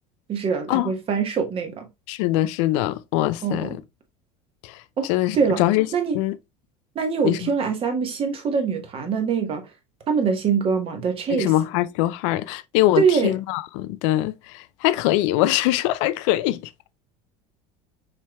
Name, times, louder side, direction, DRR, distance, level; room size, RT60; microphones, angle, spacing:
voice 1, 0.3-1.8 3.4-3.8 5.0-5.1 5.3-5.6 5.9-6.2 6.9-9.6 10.1-11.5 13.0-13.3, right 6 dB, 35° right, 1.2 m, -23 dB
voice 2, 2.1-3.8 4.6-5.9 6.1-6.4 7.2-7.5 11.3-16.9, left 15 dB, 80° left, 0.4 m, -23 dB
5.7 x 3.3 x 2.2 m
supercardioid pair, 125°, 16 cm